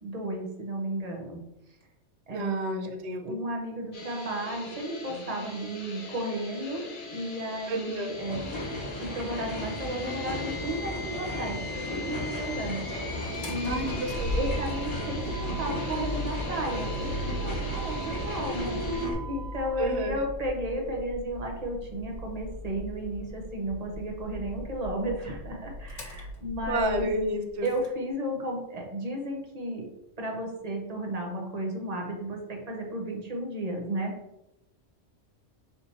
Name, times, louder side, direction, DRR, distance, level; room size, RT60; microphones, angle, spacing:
voice 1, 0.0-1.4 2.3-2.9 3.2-6.8 7.1-8.4 9.0-12.9 13.5-14.0 14.3-18.8 19.3-27.1 27.6-29.9 30.2-34.1, right 1 dB, 40° right, 1 dB, 0.7 m, -33 dB
voice 2, 2.3-3.2 7.7-8.1 13.6-14.4 19.8-20.2 26.7-27.7, right 1 dB, 65° right, 4 dB, 0.9 m, -30 dB
sound 1, 3.9-19.1, left 3 dB, 50° left, 0.8 m, -41 dB
sound 2, 8.1-19.1, left 1 dB, 25° left, 1.0 m, -35 dB
Motor vehicle (road), 13.3-27.9, equal, 75° left, 1.2 m, -38 dB
3.5 x 2.7 x 4.3 m, 0.89 s
omnidirectional pair, 1.3 m